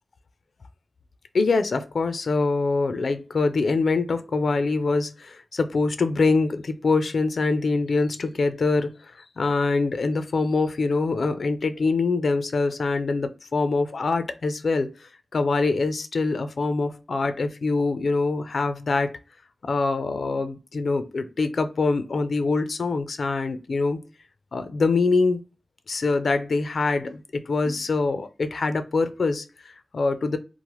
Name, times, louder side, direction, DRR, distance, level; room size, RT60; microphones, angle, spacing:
voice 1, 1.3-19.2 19.6-24.0 24.5-25.4 25.9-30.4, left 3 dB, 75° left, 0.4 m, -24 dB
3.1 x 2.0 x 2.9 m
wide cardioid pair, 70°, 0 cm